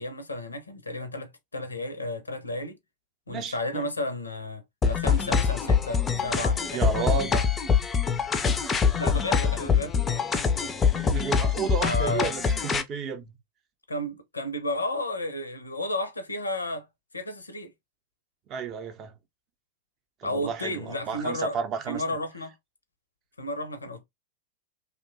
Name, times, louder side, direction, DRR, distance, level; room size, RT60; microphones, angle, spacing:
voice 1, 0.0-2.8 3.3-7.4 9.0-10.0 11.8-12.3 13.9-16.9 17.1-17.7 20.2-21.6 21.9-22.5 23.4-24.1, left 1 dB, 80° left, 0.5 m, -32 dB
voice 2, 3.3-3.9 6.7-7.3 11.1-13.4 18.5-19.2 20.2-22.0, right 6 dB, 35° right, 0.5 m, -32 dB
sound 1, 4.8-12.8, left 6 dB, 20° left, 0.4 m, -24 dB
2.8 x 2.1 x 2.5 m
figure-of-eight pair, 90°, 0 cm